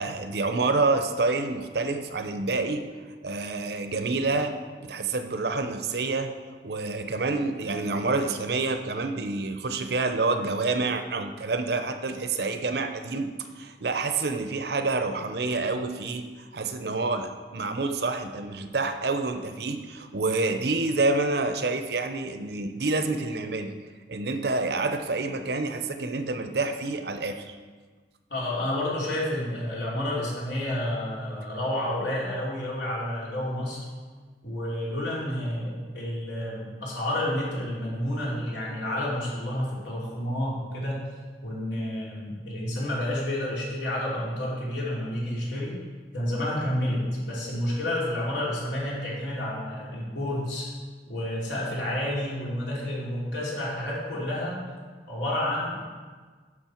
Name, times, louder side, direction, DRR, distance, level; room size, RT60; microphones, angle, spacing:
voice 1, 0.0-2.8 3.2-4.5 4.8-6.3 6.6-16.2 16.5-23.7 24.1-27.6, right 3 dB, 65° right, 7 dB, 0.7 m, -28 dB
voice 2, 28.3-33.8 34.4-41.0 41.4-45.8 46.1-50.7 51.1-54.6 55.1-55.8, left 1 dB, 85° left, -5 dB, 3.0 m, -30 dB
10.5 x 6.5 x 4.5 m, 1.5 s
head